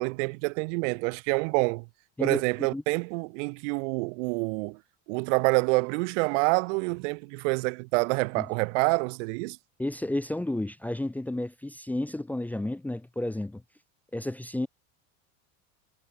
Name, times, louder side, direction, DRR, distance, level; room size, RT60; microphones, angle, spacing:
voice 1, 0.0-1.9 2.2-4.8 5.1-9.6, right 30 dB, 80° right, 2.4 m, -27 dB
voice 2, 2.2-2.8 8.4-8.5 9.8-13.6 14.1-14.7, left 1 dB, 5° left, 0.7 m, -32 dB
cardioid pair, 140°, 36 cm